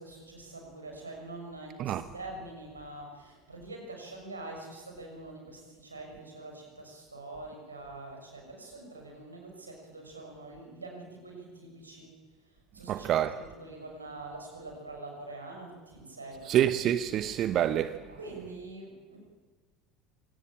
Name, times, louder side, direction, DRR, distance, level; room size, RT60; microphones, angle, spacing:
voice 1, 0.0-12.1 12.7-16.5 18.1-19.2, right 2 dB, 90° right, 6.4 m, -45 dB
voice 2, 12.9-13.4 16.4-18.0, right 11 dB, 45° right, 1.0 m, -27 dB
26.0 x 18.5 x 8.9 m
figure-of-eight pair, 70°, 0 cm